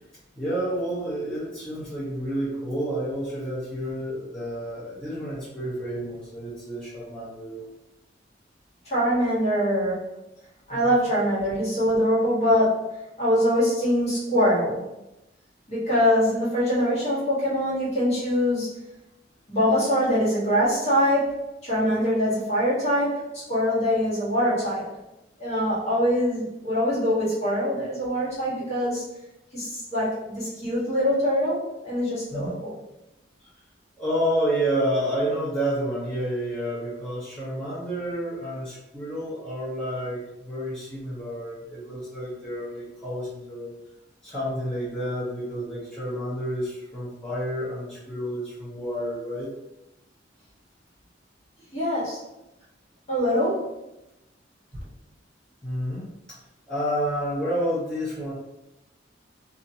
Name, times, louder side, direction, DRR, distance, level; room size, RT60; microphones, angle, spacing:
voice 1, 0.4-7.6 10.7-11.0 32.3-32.5 33.4-33.5 34.0-43.7 44.2-49.5 55.6-56.4 56.7-58.3, equal, 5° left, -11 dB, 0.7 m, -30 dB
voice 2, 8.8-10.0 10.7-12.8 13.2-14.9 15.7-18.8 19.5-21.3 21.6-24.9 25.4-29.1 29.5-32.8 51.7-52.2 53.1-53.7, equal, 35° left, -9 dB, 1.4 m, -23 dB
2.8 x 2.4 x 2.7 m, 0.94 s
head